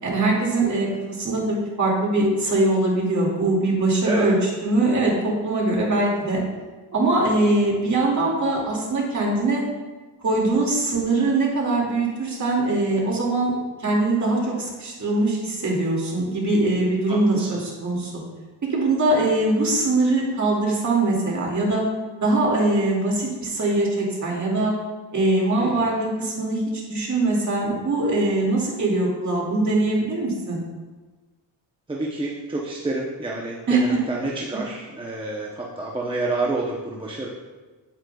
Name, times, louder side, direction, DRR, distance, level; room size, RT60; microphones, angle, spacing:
voice 1, 0.0-6.4 6.9-9.6 10.2-18.1 18.7-21.8 22.2-24.8 25.1-26.6 26.9-30.6 33.7-34.0, right 2 dB, 40° right, -2 dB, 2.2 m, -22 dB
voice 2, 17.1-17.6 25.5-25.9 31.9-37.3, right 2 dB, 10° right, -3 dB, 0.7 m, -29 dB
9.0 x 8.0 x 2.3 m, 1.3 s
cardioid pair, 120°, 46 cm